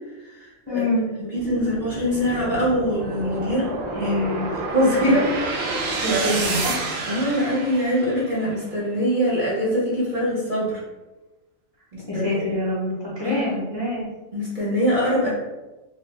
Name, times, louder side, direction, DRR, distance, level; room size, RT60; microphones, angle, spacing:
voice 1, 0.7-1.1 3.9-4.5 5.0-5.2 6.0-6.9 12.1-14.1 15.2-15.3, left 1 dB, 30° left, -8 dB, 0.5 m, -25 dB
voice 2, 1.3-4.1 4.7-5.3 6.1-6.2 7.1-10.8 11.9-12.4 13.2-13.4 14.3-15.3, equal, 40° right, -7 dB, 0.8 m, -23 dB
sound 1, 1.3-8.6, right 3 dB, 70° right, 0.9 m, -29 dB
2.6 x 2.4 x 3.1 m, 1.1 s
omnidirectional pair, 1.5 m